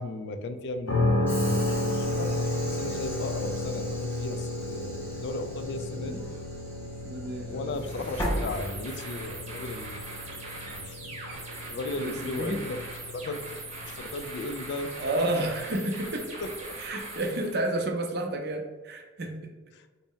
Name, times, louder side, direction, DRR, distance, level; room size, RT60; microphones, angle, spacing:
voice 1, 0.0-2.3 2.7-6.2 7.5-10.0 10.8-11.0 11.7-12.8 13.1-13.4 13.8-15.0 16.4-16.8 19.7-19.9, left 2 dB, 55° left, 8 dB, 0.3 m, -36 dB
sound 1, 0.9-16.7, left 1 dB, 80° left, 0.7 m, -33 dB
Train / Sliding door, 1.3-9.2, equal, 10° left, 0.7 m, -38 dB
voice 2, 7.0-7.7 12.0-12.6 15.0-16.4 16.8-19.3, right 1 dB, 50° right, 3 dB, 0.5 m, -31 dB
sound 2, 7.7-17.6, right 2 dB, 35° right, 0.9 m, -41 dB
4.0 x 2.0 x 3.7 m, 1.3 s
head